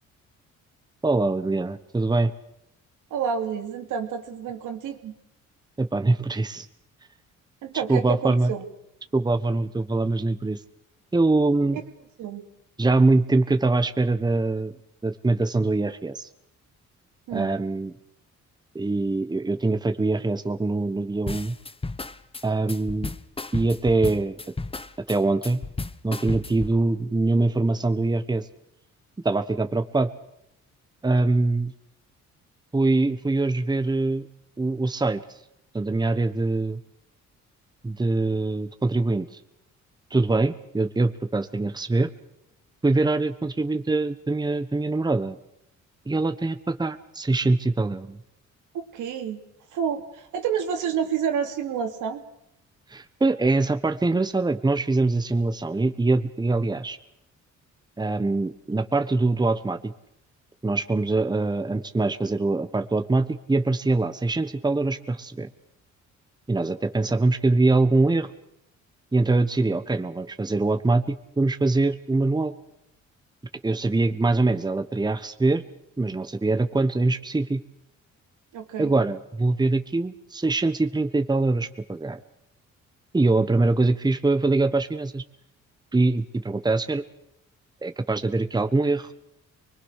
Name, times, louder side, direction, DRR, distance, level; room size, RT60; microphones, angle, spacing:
voice 1, 1.0-2.3 5.8-6.7 7.9-8.5 9.1-10.6 11.1-11.8 12.8-14.7 15.0-16.3 17.3-17.9 18.7-21.5 22.4-23.1 23.5-24.4 25.1-25.6 26.0-28.5 29.2-30.1 31.0-31.7 32.7-34.3 34.6-35.2 35.7-36.8 37.8-39.3 40.1-42.1 42.8-45.4 46.1-48.2 52.9-57.0 58.0-59.9 60.6-65.5 66.5-68.3 69.1-72.5 73.6-75.6 76.0-77.6 78.8-82.2 83.1-85.2 85.9-87.0 87.8-89.1, right 2 dB, 15° right, 10 dB, 1.2 m, -23 dB
voice 2, 3.1-5.1 7.6-8.6 12.2-12.4 17.3-17.5 48.7-49.4 49.7-52.2 78.5-78.9, right 7 dB, 85° right, 4 dB, 3.0 m, -29 dB
sound 1, 21.3-26.8, left 3 dB, 20° left, 1.0 m, -34 dB
24.0 x 21.5 x 6.6 m, 0.81 s
cardioid pair, 90°, 30 cm